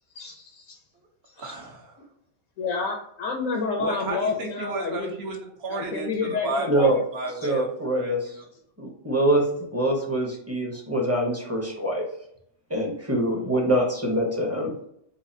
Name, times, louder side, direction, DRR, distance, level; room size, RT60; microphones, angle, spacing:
voice 1, 0.1-0.8 1.2-1.5 2.6-5.3 5.7-7.0 7.4-7.5, left 4 dB, 90° left, 1 dB, 1.0 m, -30 dB
voice 2, 1.4-2.0 3.8-7.7 7.9-8.1, right 2 dB, 60° right, 1 dB, 1.0 m, -33 dB
voice 3, 7.4-8.4 8.8-12.1 12.7-14.7, right 1 dB, 15° right, -1 dB, 0.7 m, -24 dB
4.0 x 2.5 x 2.6 m, 0.72 s
omnidirectional pair, 1.3 m